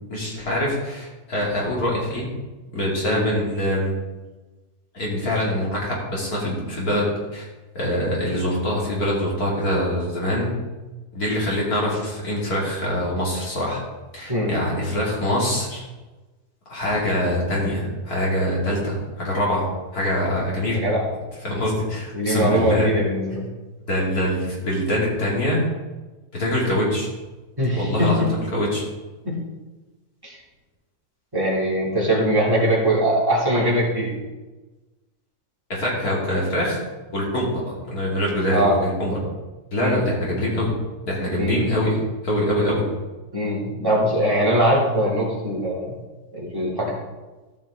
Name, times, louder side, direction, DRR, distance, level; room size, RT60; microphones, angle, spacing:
voice 1, 0.1-2.3 2.7-3.9 4.9-7.4 7.7-10.5 11.1-13.8 14.1-15.8 16.7-19.6 19.9-20.8 21.4-22.9 23.9-25.6 26.3-27.1 27.7-28.8 35.7-36.8 37.1-39.2 39.7-40.7 41.1-42.0 42.2-42.8, left 1 dB, 65° left, -5 dB, 3.3 m, -24 dB
voice 2, 14.3-14.6 20.7-21.1 22.1-23.5 27.6-28.3 29.2-29.4 30.2-30.4 31.3-34.1 38.5-38.8 39.8-40.0 41.4-41.6 43.3-46.0 46.3-46.9, equal, 15° right, -6 dB, 2.9 m, -21 dB
14.0 x 6.1 x 3.7 m, 1.2 s
omnidirectional pair, 1.7 m